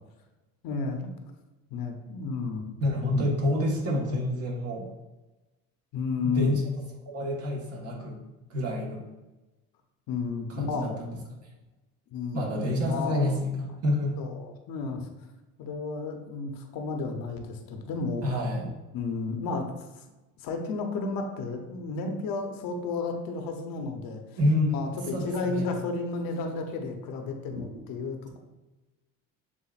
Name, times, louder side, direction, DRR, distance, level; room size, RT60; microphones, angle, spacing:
voice 1, 0.6-1.1 1.7-2.7 5.9-6.5 10.1-10.9 12.1-12.5 12.9-13.4 14.2-15.1 15.6-18.4 18.9-20.1 20.4-24.4 24.7-28.4, left 4 dB, 60° left, 4 dB, 0.8 m, -32 dB
voice 2, 2.8-4.9 6.2-6.7 7.1-8.2 8.5-9.0 10.5-11.1 12.3-14.2 18.2-18.7 24.4-24.8 25.1-25.7, left 1 dB, 40° right, -1 dB, 1.4 m, -28 dB
7.0 x 2.5 x 2.4 m, 1.1 s
supercardioid pair, 80°, 39 cm